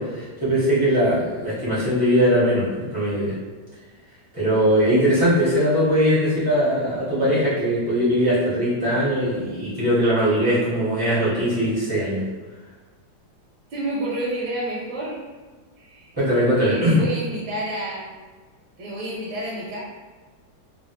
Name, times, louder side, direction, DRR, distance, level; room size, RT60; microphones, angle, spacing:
voice 1, 0.0-2.7 2.9-3.3 4.3-12.2 16.2-17.0, equal, 20° right, -10 dB, 0.6 m, -20 dB
voice 2, 13.7-15.2 15.8-16.1 16.6-18.1 18.8-19.8, right 1 dB, 70° right, -6 dB, 1.3 m, -29 dB
3.1 x 2.3 x 2.8 m, 1.3 s
omnidirectional pair, 2.1 m